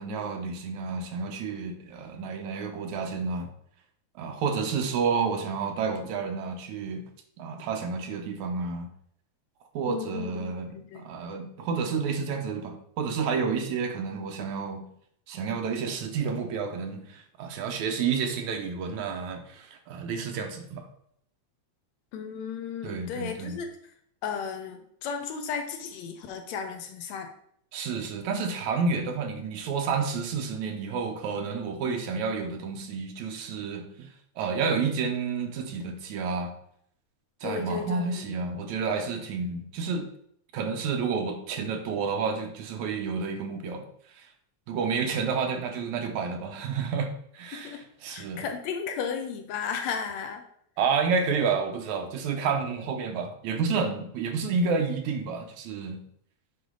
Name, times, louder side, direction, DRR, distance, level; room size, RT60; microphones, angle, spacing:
voice 1, 0.0-3.5 4.2-7.0 7.4-8.9 9.7-14.9 15.3-20.9 22.8-23.6 27.7-34.1 34.4-36.5 37.4-40.1 40.5-43.9 44.2-44.3 44.7-48.5 50.8-56.0, right 5 dB, 75° right, 4 dB, 2.2 m, -30 dB
voice 2, 9.9-11.1 22.1-23.8 24.2-27.3 31.8-32.0 37.4-38.4 47.5-47.8 48.1-50.4, left 6 dB, 75° left, 5 dB, 1.9 m, -35 dB
8.3 x 5.3 x 3.8 m, 0.68 s
omnidirectional pair, 3.5 m